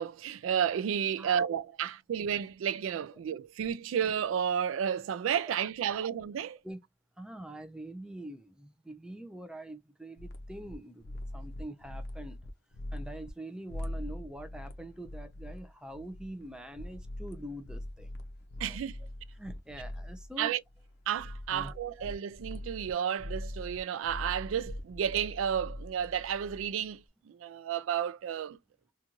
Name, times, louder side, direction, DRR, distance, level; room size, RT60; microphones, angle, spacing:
voice 1, 0.0-6.6 18.6-19.0 20.4-20.6 21.1-28.6, right 8 dB, 80° right, 0.3 m, -32 dB
voice 2, 7.2-12.4 12.9-18.1 18.6-18.8 19.3-20.5 21.5-22.1, right 1 dB, 5° right, 0.4 m, -44 dB
sound 1, 10.2-10.8 11.0-13.3 13.7-20.4 20.7-22.9 23.2-26.9, left 1 dB, 50° left, 0.5 m, -42 dB
2.5 x 2.3 x 2.9 m
head